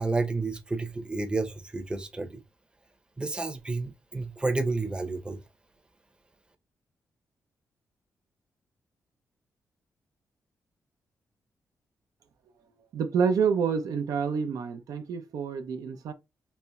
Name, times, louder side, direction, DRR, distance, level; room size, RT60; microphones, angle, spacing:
voice 1, 0.0-2.3 3.2-5.4, right 3 dB, 15° right, 0.6 m, -30 dB
voice 2, 12.9-16.1, right 6 dB, 85° right, 0.5 m, -28 dB
4.2 x 3.0 x 2.2 m
cardioid pair, 90°, 6 cm